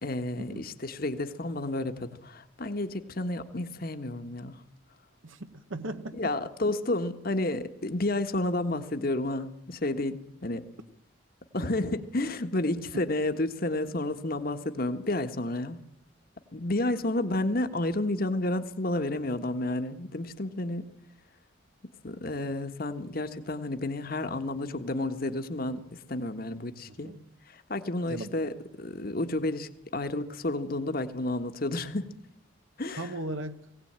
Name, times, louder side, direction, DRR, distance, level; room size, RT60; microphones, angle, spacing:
voice 1, 0.0-4.6 6.1-10.7 11.5-15.8 16.5-20.9 22.0-27.1 27.5-32.1 32.8-33.1, left 2 dB, 50° left, 1.5 m, -31 dB
voice 2, 5.2-6.3 11.6-11.8 12.9-13.0 26.9-27.2 28.1-28.3 32.9-33.7, right 2 dB, 80° right, 1.2 m, -38 dB
19.5 x 17.5 x 8.9 m
head